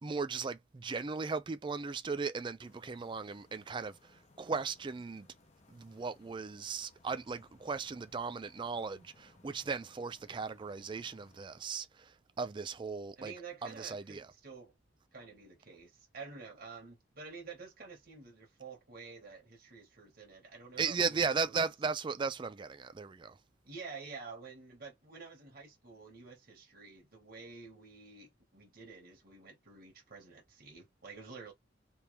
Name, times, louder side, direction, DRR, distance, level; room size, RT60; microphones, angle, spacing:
voice 1, 0.0-5.3 5.7-13.3 13.6-14.3 20.8-23.4, right 5 dB, 25° right, 0.4 m, -37 dB
sound 1, 2.6-11.5, left 2 dB, 35° left, 0.9 m, -65 dB
voice 2, 13.2-14.7 15.1-21.6 23.6-31.5, right 4 dB, 50° right, 1.6 m, -50 dB
3.5 x 2.8 x 3.2 m
head